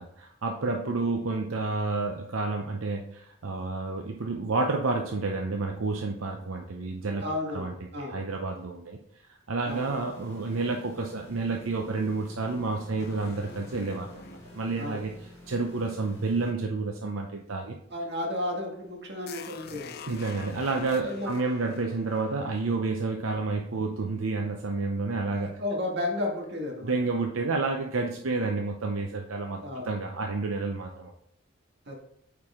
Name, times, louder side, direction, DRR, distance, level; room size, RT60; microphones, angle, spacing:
voice 1, 0.0-7.2 7.5-9.0 9.5-14.2 14.5-15.1 15.5-17.8 20.1-25.6 26.8-31.1, right 3 dB, 80° right, 2 dB, 0.7 m, -30 dB
voice 2, 7.2-8.2 9.6-9.9 14.8-15.0 17.9-20.0 21.0-21.3 25.3-26.9 29.6-29.9 31.9-32.0, left 1 dB, 55° right, 1 dB, 1.8 m, -33 dB
sound 1, 9.6-16.5, left 1 dB, 10° left, 3.2 m, -50 dB
sound 2, 13.0-16.4 19.3-23.4, left 5 dB, 50° left, 0.4 m, -46 dB
8.6 x 4.7 x 3.6 m, 0.70 s
head